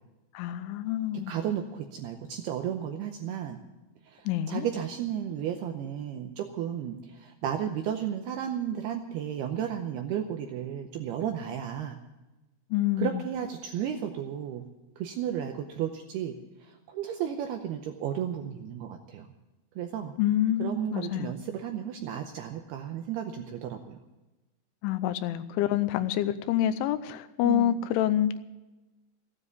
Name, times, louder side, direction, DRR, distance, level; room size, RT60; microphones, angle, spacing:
voice 1, 0.3-1.4 4.3-4.7 12.7-13.2 20.2-21.3 24.8-28.4, left 11 dB, 85° left, 12 dB, 3.1 m, -27 dB
voice 2, 1.3-3.6 4.1-12.0 13.0-14.6 15.0-19.3 19.8-20.1 20.6-24.0 27.4-27.8, right 9 dB, 85° right, 5 dB, 2.3 m, -33 dB
15.0 x 9.8 x 8.1 m, 1.1 s
omnidirectional pair, 5.5 m